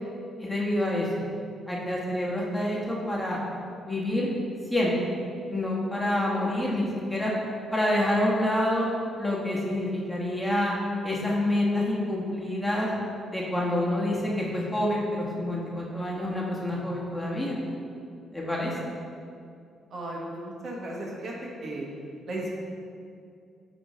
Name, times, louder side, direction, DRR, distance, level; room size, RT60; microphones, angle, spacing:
voice 1, 0.4-1.1 1.7-3.4 3.9-4.3 4.7-4.9 5.5-7.3 7.7-8.9 9.2-10.8 11.0-12.9 13.3-17.6 18.3-18.7, left 1 dB, 5° left, -4 dB, 1.3 m, -27 dB
voice 2, 19.9-21.3 21.6-21.9 22.3-22.5, right 1 dB, 55° right, -3 dB, 1.2 m, -35 dB
8.7 x 3.0 x 4.1 m, 2.4 s
cardioid pair, 90°, 0 cm